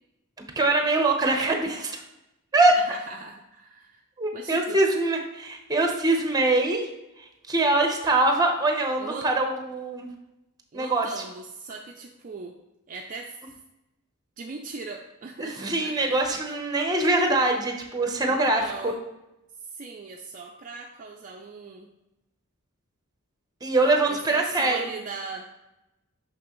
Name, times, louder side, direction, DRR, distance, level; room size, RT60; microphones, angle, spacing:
voice 1, 0.6-2.0 2.5-2.8 4.2-6.9 7.2-10.1 10.7-11.2 15.4-18.9 23.6-24.8, right 2 dB, 15° right, 3 dB, 0.9 m, -23 dB
voice 2, 2.7-4.0 4.3-4.8 9.0-9.3 10.7-12.6 12.9-13.5 14.4-16.2 18.2-19.0 19.7-21.9 24.0-25.5, right 4 dB, 35° right, 1 dB, 0.5 m, -39 dB
6.0 x 5.9 x 3.1 m, 0.93 s
head